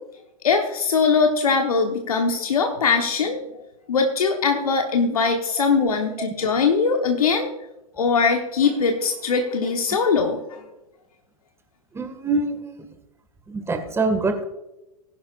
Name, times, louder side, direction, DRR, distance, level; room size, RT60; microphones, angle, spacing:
voice 1, 0.4-3.4 3.9-7.5 8.0-10.6, left 5 dB, 75° left, 3 dB, 1.2 m, -21 dB
voice 2, 11.9-12.6 13.5-14.4, right 3 dB, 15° right, 7 dB, 1.9 m, -24 dB
19.0 x 11.0 x 2.5 m, 0.95 s
figure-of-eight pair, 100°, 19 cm